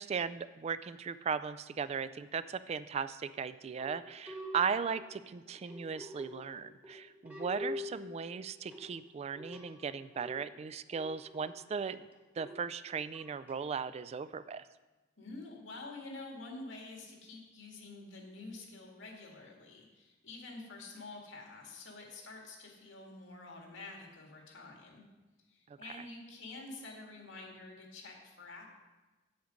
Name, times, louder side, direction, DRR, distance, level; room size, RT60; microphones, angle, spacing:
voice 1, 0.0-12.1 12.4-14.7 25.7-25.8, right 6 dB, 35° right, 14 dB, 0.3 m, -37 dB
sound 1, 3.8-13.6, left 2 dB, 10° right, 1.2 m, -47 dB
voice 2, 15.2-25.0 25.5-28.7, left 2 dB, 85° left, 0 dB, 2.0 m, -48 dB
8.2 x 7.8 x 5.1 m, 1.2 s
head